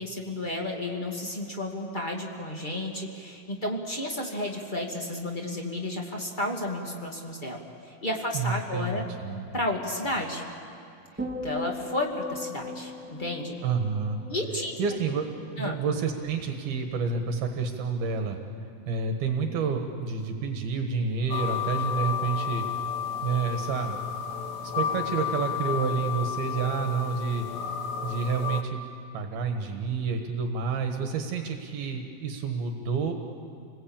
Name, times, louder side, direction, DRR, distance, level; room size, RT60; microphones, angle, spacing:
voice 1, 0.0-9.0 9.5-10.4 11.4-13.5 14.3-14.7 15.6-15.8, left 1 dB, 35° left, 1 dB, 0.7 m, -32 dB
voice 2, 8.3-9.6 13.6-14.2 14.8-18.4 18.9-22.6 23.2-24.0 24.6-27.5 28.0-28.8 29.1-33.1, right 5 dB, 70° right, 4 dB, 3.1 m, -29 dB
sound 1, 11.2-15.6 15.9-16.3, left 2 dB, 15° right, 0.4 m, -39 dB
sound 2, 21.3-28.6, left 8 dB, 80° left, 1.6 m, -32 dB
29.5 x 20.5 x 8.7 m, 2.5 s
omnidirectional pair, 4.7 m